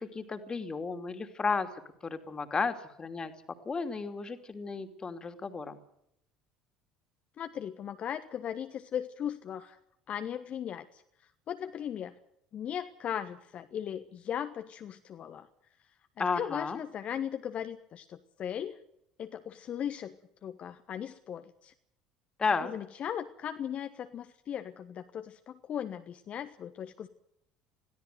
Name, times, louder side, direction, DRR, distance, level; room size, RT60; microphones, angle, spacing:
voice 1, 0.0-1.7 2.0-3.3 3.6-5.8 16.2-16.8 22.4-22.7, left 4 dB, 25° left, 8 dB, 2.7 m, -33 dB
voice 2, 7.4-9.8 10.1-11.0 11.5-12.1 12.5-15.5 16.2-18.8 19.2-20.1 20.4-21.7 22.6-27.1, left 9 dB, 40° left, 9 dB, 1.3 m, -38 dB
22.0 x 16.0 x 7.9 m, 0.75 s
figure-of-eight pair, 60°, 3 cm